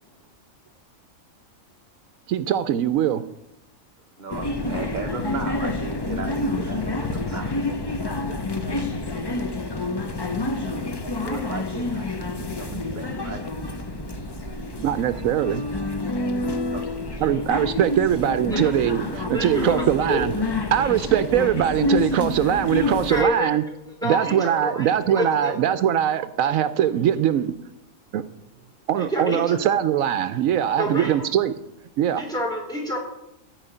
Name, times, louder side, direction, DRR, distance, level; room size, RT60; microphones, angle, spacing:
voice 1, 2.3-3.2 8.2-8.4 8.7-8.8 12.7-12.8 14.5-15.6 17.2-20.3 20.7-23.6 24.0-27.5 28.1-28.2 28.9-31.5 32.0-32.2, right 10 dB, 80° right, 12 dB, 1.0 m, -22 dB
voice 2, 4.2-7.5 11.2-13.4 16.7-17.0 22.8-23.1, right 3 dB, 35° right, 3 dB, 1.1 m, -35 dB
sound 1, 4.3-23.2, left 2 dB, 25° left, 0.7 m, -28 dB
voice 3, 19.1-20.3 23.1-23.5 24.0-25.5 29.0-29.5 30.6-31.2 32.2-33.0, equal, 5° left, -2 dB, 3.6 m, -28 dB
14.5 x 5.0 x 8.9 m, 0.86 s
omnidirectional pair, 1.4 m